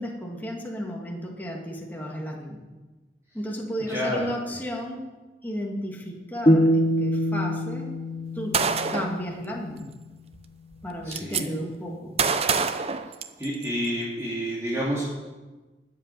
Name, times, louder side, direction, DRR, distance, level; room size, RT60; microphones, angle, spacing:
voice 1, 0.0-2.6 3.3-5.0 5.4-7.9 8.3-8.5 8.9-9.9 10.8-12.2, equal, 10° left, -1 dB, 2.4 m, -33 dB
voice 2, 3.9-4.3 11.0-11.5 13.4-15.1, equal, 15° right, -7 dB, 2.6 m, -29 dB
sound 1, 6.5-9.6, equal, 30° left, 0.8 m, -24 dB
Gunshot gunfire, 8.5-9.2 10.3-10.4 10.7-11.4 12.2-13.7, right 5 dB, 35° right, 0.7 m, -25 dB
13.0 x 8.0 x 9.9 m, 1.2 s
head